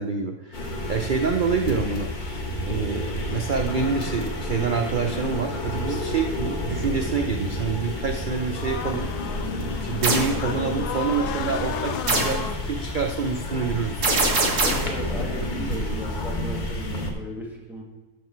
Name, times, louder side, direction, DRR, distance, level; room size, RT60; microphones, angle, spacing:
voice 1, 0.0-2.1 2.7-9.1 9.8-14.1, right 5 dB, 80° right, 4 dB, 0.4 m, -27 dB
sound 1, 0.5-17.1, left 1 dB, 35° left, 1.1 m, -30 dB
sound 2, 8.5-14.1, left 8 dB, 85° left, 1.2 m, -34 dB
sound 3, 10.0-10.3 12.1-12.4 14.0-14.9, right 2 dB, 55° right, 1.7 m, -22 dB
voice 2, 14.6-17.8, equal, ahead, -4 dB, 2.0 m, -35 dB
12.5 x 5.1 x 4.6 m, 1.3 s
omnidirectional pair, 1.7 m